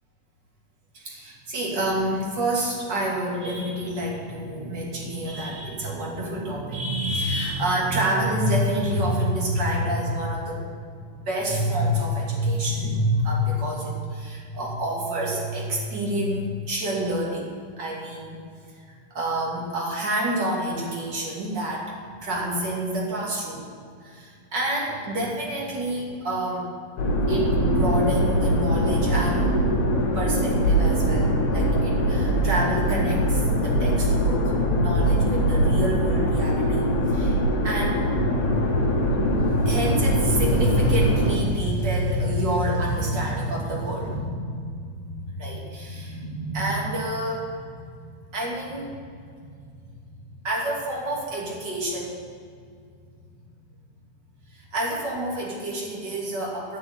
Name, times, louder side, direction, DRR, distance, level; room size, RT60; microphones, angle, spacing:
voice 1, 0.9-10.7 11.0-17.5 17.8-18.4 18.9-21.9 22.2-23.6 24.0-26.7 27.3-29.5 30.1-38.9 39.4-48.9 49.4-49.5 49.8-49.9 50.4-52.2 54.5-56.8, right 1 dB, 35° right, -3 dB, 2.8 m, -28 dB
sound 1, 27.0-41.4, equal, 60° left, 3.1 m, -22 dB
11.0 x 6.7 x 9.4 m, 2.2 s
omnidirectional pair, 4.0 m